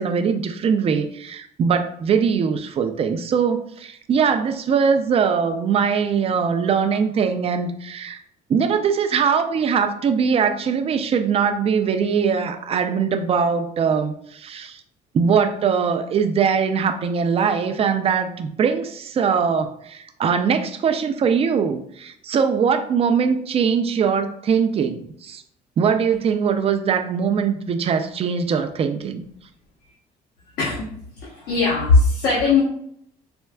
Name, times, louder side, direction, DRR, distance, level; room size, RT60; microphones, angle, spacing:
voice 1, 0.0-8.2 8.5-14.8 15.1-25.4 25.8-29.2, right 6 dB, 35° right, 8 dB, 0.4 m, -21 dB
voice 2, 30.6-30.9 31.2-32.6, left 3 dB, 85° left, -7 dB, 1.0 m, -19 dB
4.3 x 2.3 x 2.2 m, 0.70 s
cardioid pair, 110°, 17 cm